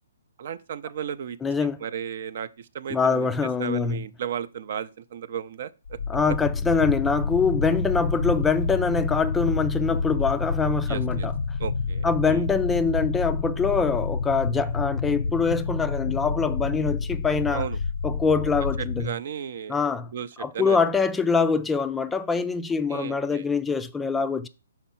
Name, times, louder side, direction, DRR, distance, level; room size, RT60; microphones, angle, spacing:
voice 1, 0.4-3.3 3.6-6.0 10.9-11.3 11.6-12.5 17.5-17.8 18.8-19.8 20.1-20.8 22.9-23.5, right 8 dB, 55° right, 0.5 m, -34 dB
voice 2, 1.4-1.8 2.9-4.0 6.1-11.3 12.0-17.6 18.0-19.1 19.7-20.1 20.4-24.5, left 5 dB, 10° left, 0.3 m, -24 dB
sound 1, 5.8-19.1, left 4 dB, 75° left, 0.4 m, -28 dB
5.8 x 4.4 x 5.6 m
hypercardioid pair, 145°, 0 cm